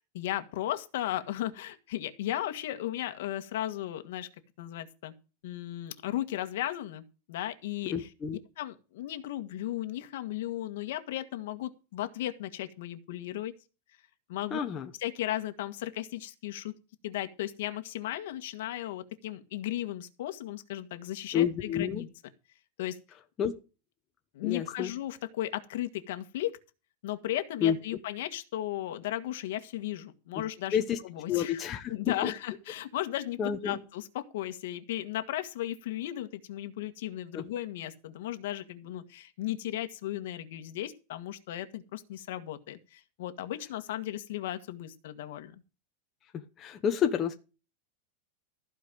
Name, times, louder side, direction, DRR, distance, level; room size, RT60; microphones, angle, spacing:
voice 1, 0.1-4.3 4.6-5.1 5.4-8.1 8.6-13.5 14.3-14.6 15.0-16.7 17.0-22.1 22.8-23.0 24.3-26.5 27.0-31.6 31.9-33.4 33.6-45.6, left 13 dB, 60° left, 8 dB, 1.7 m, -35 dB
voice 2, 7.9-8.4 14.5-14.9 21.3-22.0 23.4-23.5 24.4-24.9 27.6-27.8 30.3-30.4 30.7-31.0 31.3-32.3 33.4-33.8 37.3-37.4 46.3-47.3, left 8 dB, 20° left, 5 dB, 0.9 m, -29 dB
15.0 x 5.1 x 7.6 m, 0.32 s
supercardioid pair, 170°, 0 cm